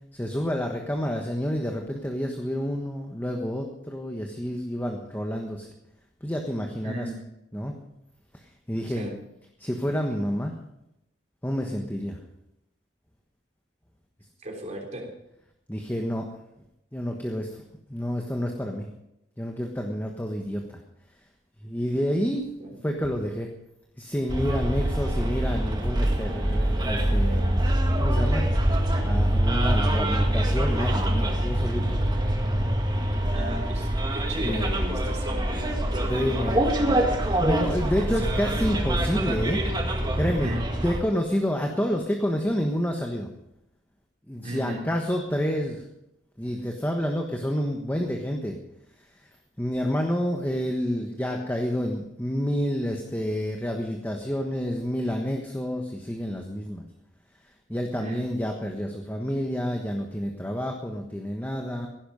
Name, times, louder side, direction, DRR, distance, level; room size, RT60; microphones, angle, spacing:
voice 1, 0.1-5.7 6.2-7.1 7.5-7.8 8.7-9.1 9.6-10.6 11.4-12.2 15.7-16.3 16.9-17.6 17.9-18.9 19.4-20.8 21.6-22.5 22.8-23.5 24.0-27.6 28.0-28.5 29.0-32.0 34.4-34.7 36.1-36.6 37.4-39.6 40.2-40.5 40.8-43.3 44.3-45.8 46.4-48.6 49.6-56.9 57.7-61.9, equal, 10° left, 2 dB, 1.3 m, -29 dB
voice 2, 6.8-7.2 8.9-9.1 14.4-15.1 22.6-22.9 33.3-35.6 35.9-38.6 40.2-40.6 44.4-44.8 58.0-58.3, right 1 dB, 40° right, 1 dB, 3.5 m, -37 dB
Bus, 24.3-41.0, right 1 dB, 25° right, 2.0 m, -25 dB
16.5 x 11.5 x 5.2 m, 0.84 s
head